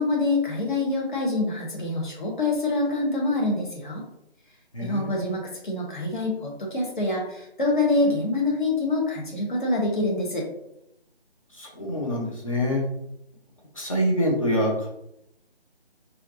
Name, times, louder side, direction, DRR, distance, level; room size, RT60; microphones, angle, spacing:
voice 1, 0.0-4.0 4.8-10.5, left 2 dB, 50° left, -2 dB, 1.2 m, -25 dB
voice 2, 4.7-5.3 11.6-12.8 13.7-14.9, equal, 35° left, -2 dB, 0.8 m, -25 dB
4.1 x 2.6 x 2.8 m, 0.80 s
figure-of-eight pair, 170°, 31 cm